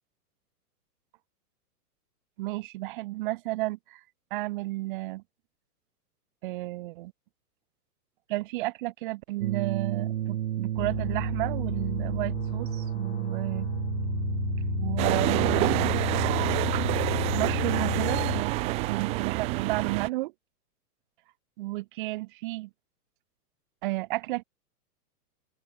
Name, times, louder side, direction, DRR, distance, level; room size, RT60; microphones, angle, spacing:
voice 1, 2.4-4.0 4.3-5.2 6.4-7.1 8.3-13.7 14.8-16.0 17.3-18.5 18.9-20.3 21.6-22.7 23.8-24.4, right 19 dB, 30° right, 1.2 m, -32 dB
sound 1, 9.4-20.0, right 11 dB, 65° right, 2.3 m, -33 dB
sound 2, 10.8-18.4, left 16 dB, 40° left, 1.0 m, -33 dB
sound 3, 15.0-20.1, right 22 dB, 15° right, 0.7 m, -28 dB
open air
hypercardioid pair, 165°, 47 cm